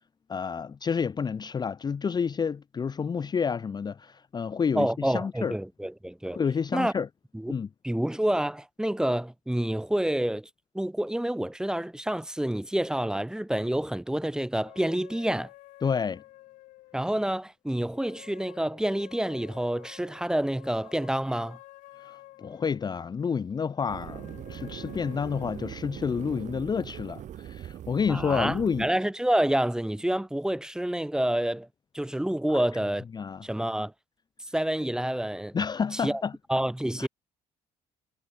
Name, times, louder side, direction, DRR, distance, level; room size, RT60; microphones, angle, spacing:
voice 1, 0.3-5.5 6.3-7.1 7.5-7.7 15.8-16.2 22.0-28.9 32.5-32.6 33.1-33.5 35.5-36.3 37.0-37.1, left 6 dB, 30° left, 0.6 m, -29 dB
voice 2, 4.7-6.4 6.7-6.9 7.3-7.5 7.8-10.5 10.7-15.5 16.9-21.6 28.1-31.7 31.9-33.0 33.4-33.9 34.5-35.5 35.9-36.2 36.5-37.1, right 1 dB, 5° right, 1.4 m, -28 dB
sound 1, 14.6-17.4 17.9-23.1 23.7-26.2, left 18 dB, 90° left, 1.8 m, -51 dB
sound 2, 23.9-28.9, right 11 dB, 65° right, 1.3 m, -41 dB
cardioid pair, 85°, 13 cm